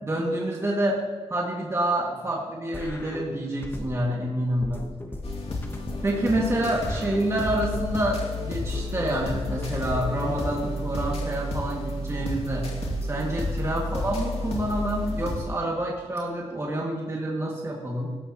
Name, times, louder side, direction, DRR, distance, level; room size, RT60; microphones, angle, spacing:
voice 1, 0.0-1.0 1.3-4.9 6.0-12.7 13.0-18.2, right 1 dB, 25° right, -3 dB, 2.2 m, -28 dB
sound 1, 2.7-4.2 4.6-8.2 8.6-10.7, left 1 dB, 20° left, 1.2 m, -38 dB
sound 2, 5.2-15.5, left 2 dB, 60° left, 2.4 m, -31 dB
18.0 x 13.0 x 3.0 m, 1.5 s
wide cardioid pair, 105°, 12 cm